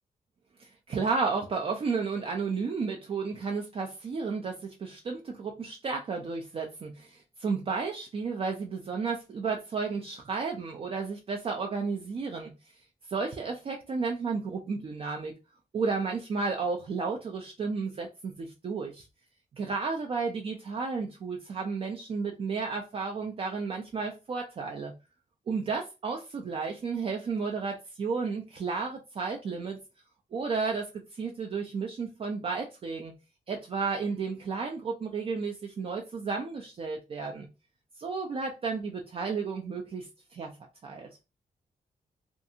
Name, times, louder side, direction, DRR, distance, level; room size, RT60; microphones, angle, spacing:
voice 1, 0.6-12.5 13.1-15.3 15.7-19.1 19.6-24.9 25.5-29.8 30.3-33.1 33.5-37.5 38.0-40.5 40.8-41.1, right 4 dB, 40° right, 0.4 m, -32 dB
2.6 x 2.4 x 2.6 m
wide cardioid pair, 140°, 15 cm